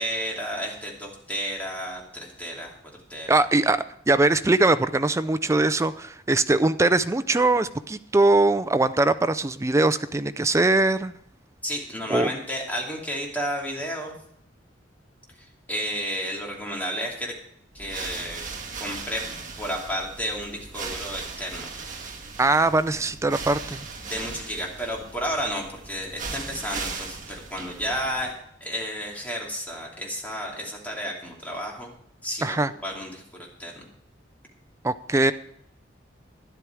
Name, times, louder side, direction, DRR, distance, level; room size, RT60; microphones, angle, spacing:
voice 1, 0.0-2.8 3.1-3.3 11.6-14.1 15.4-17.4 17.7-18.4 18.8-19.2 19.6-21.7 24.1-31.9 32.2-33.9, equal, 10° left, -1 dB, 2.8 m, -32 dB
voice 2, 3.3-11.1 12.1-12.3 22.4-23.9 32.4-32.7 34.8-35.3, right 2 dB, 15° right, 13 dB, 0.4 m, -21 dB
sound 1, 17.7-28.4, right 4 dB, 45° right, 2.0 m, -38 dB
12.5 x 10.5 x 4.7 m, 0.70 s
head